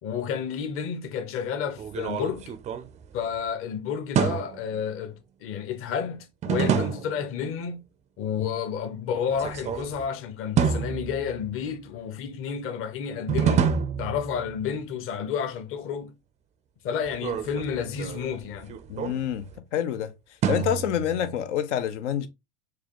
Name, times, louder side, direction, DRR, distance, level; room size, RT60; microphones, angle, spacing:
voice 1, 0.0-2.5 3.1-7.8 8.2-13.7 14.0-16.1 16.8-18.8, left 7 dB, 40° left, 0.8 m, -31 dB
sound 1, 1.8-3.5 4.2-4.8 6.4-7.3 9.3-10.1 10.6-11.7 13.3-14.7 17.1-19.6 20.4-21.4, right 8 dB, 20° right, 0.3 m, -28 dB
voice 2, 18.9-19.5 19.7-20.1 20.5-22.3, left 10 dB, 85° left, 0.6 m, -27 dB
4.8 x 2.3 x 2.9 m
supercardioid pair, 120°, 35 cm